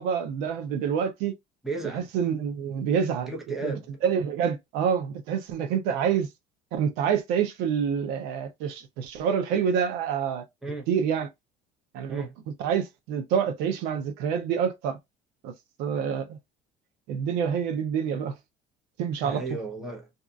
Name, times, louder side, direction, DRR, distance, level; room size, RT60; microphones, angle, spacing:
voice 1, 0.0-1.3 1.9-3.3 3.6-3.7 4.0-6.3 6.7-10.5 10.9-11.3 11.9-12.2 12.6-15.0 15.4-15.5 15.8-16.4 17.1-18.3 19.0-19.4, right 7 dB, 80° right, 0.6 m, -27 dB
voice 2, 1.6-2.1 3.2-3.9 5.9-6.0 10.6-10.9 12.1-12.4 19.2-20.1, right 3 dB, ahead, 0.8 m, -35 dB
2.6 x 2.4 x 2.3 m
cardioid pair, 155°, 16 cm